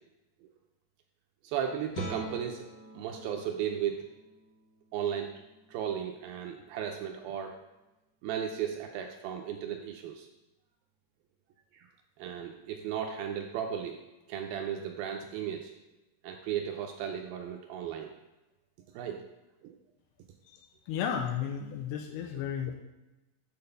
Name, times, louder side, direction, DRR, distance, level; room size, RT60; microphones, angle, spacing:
voice 1, 1.4-2.6 2.9-4.1 4.9-5.3 5.7-7.6 8.2-10.3 11.7-11.9 12.2-14.0 14.3-15.7 16.2-18.1 18.9-19.3 19.6-19.8, right 9 dB, 80° right, 3 dB, 2.2 m, -35 dB
Guitar, 1.9-7.5, right 1 dB, 65° left, 3.3 m, -46 dB
voice 2, 20.9-22.8, left 8 dB, 80° left, 2 dB, 2.6 m, -33 dB
8.8 x 4.1 x 6.7 m, 1.0 s
omnidirectional pair, 4.6 m